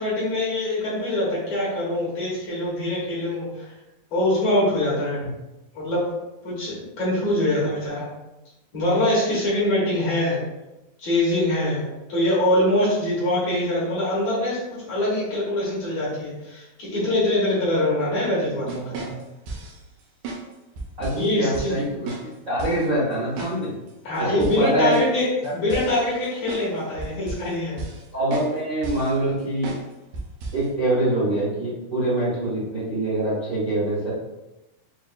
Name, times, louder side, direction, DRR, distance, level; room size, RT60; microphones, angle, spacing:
voice 1, 0.0-3.7 4.1-5.2 5.7-6.1 6.4-8.1 8.7-10.5 11.0-19.1 21.1-21.7 24.0-27.8, left 1 dB, 60° left, -6 dB, 1.9 m, -24 dB
sound 1, 18.7-19.8 20.2-20.4 20.8-21.3 21.5-21.7 22.1-22.3 22.6-22.8 23.4-23.6 23.9-24.0 24.4-26.7 27.0-27.5 27.8-28.1 28.3-28.5 28.8-29.1 29.6-29.8 30.1-30.6, right 3 dB, 80° right, 2.2 m, -34 dB
voice 2, 21.0-23.7 24.2-25.0 25.4-25.8 28.1-29.7 30.5-34.1, right 1 dB, 55° right, -11 dB, 0.9 m, -25 dB
6.3 x 2.5 x 2.4 m, 0.98 s
omnidirectional pair, 4.1 m